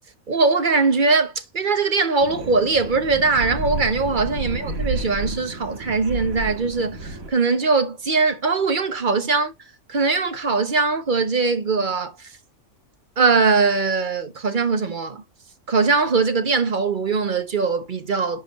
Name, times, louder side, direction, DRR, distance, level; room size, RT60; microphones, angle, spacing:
voice 1, 0.3-9.5 9.9-12.3 13.2-15.2 15.7-18.4, right 4 dB, 40° right, 1.0 m, -21 dB
sound 1, 2.2-7.3, right 2 dB, 85° right, 2.1 m, -31 dB
9.8 x 4.3 x 3.1 m
omnidirectional pair, 1.4 m